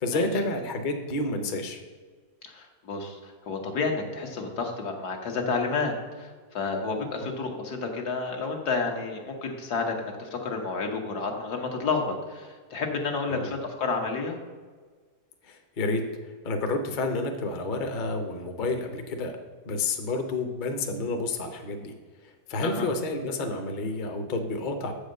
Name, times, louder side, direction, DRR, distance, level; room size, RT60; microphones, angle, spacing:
voice 1, 0.0-1.8 13.3-13.5 15.4-16.0 16.4-19.3 19.6-21.9 22.2-24.9, left 2 dB, 40° left, 5 dB, 0.8 m, -29 dB
voice 2, 2.4-14.4 22.6-22.9, left 4 dB, 75° left, 2 dB, 1.7 m, -30 dB
7.6 x 5.0 x 6.5 m, 1.5 s
omnidirectional pair, 1.7 m